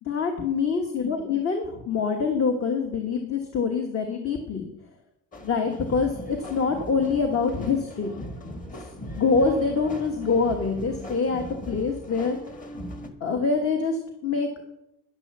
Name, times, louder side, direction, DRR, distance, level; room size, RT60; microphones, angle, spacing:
voice 1, 0.0-4.6 5.4-8.3 9.2-12.4 13.2-14.5, left 5 dB, 40° left, 4 dB, 1.5 m, -25 dB
sound 1, 5.3-13.1, left 1 dB, 25° left, 1.6 m, -39 dB
10.5 x 10.0 x 6.7 m, 0.86 s
cardioid pair, 130°, 33 cm